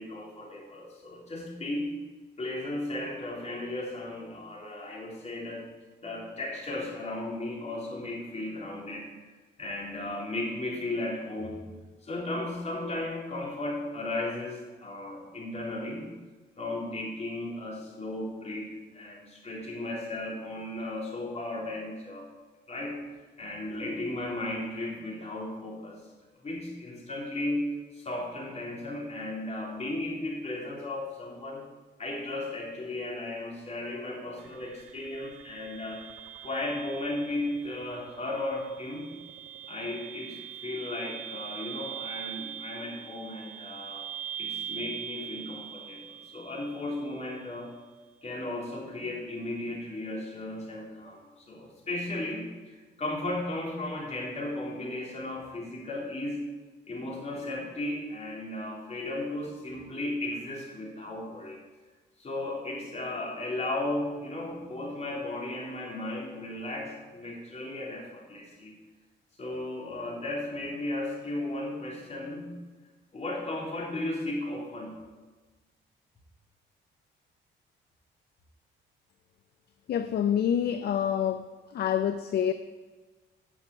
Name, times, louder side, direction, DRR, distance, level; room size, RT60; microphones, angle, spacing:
voice 1, 0.0-1.9 2.4-5.6 6.0-9.1 9.6-16.1 16.6-22.3 22.7-23.0 23.4-26.0 26.4-31.6 32.0-36.0 36.4-39.1 39.7-44.0 44.4-47.8 48.2-56.4 56.9-61.6 62.2-68.8 69.4-72.6 73.1-75.0, left 2 dB, 35° left, 3.3 m, -35 dB
sound 1, 34.4-47.4, right 10 dB, 90° right, 0.5 m, -42 dB
voice 2, 79.9-81.5 81.7-82.5, left 9 dB, 55° left, 0.5 m, -27 dB
9.7 x 5.9 x 6.0 m
cardioid pair, 90°, 20 cm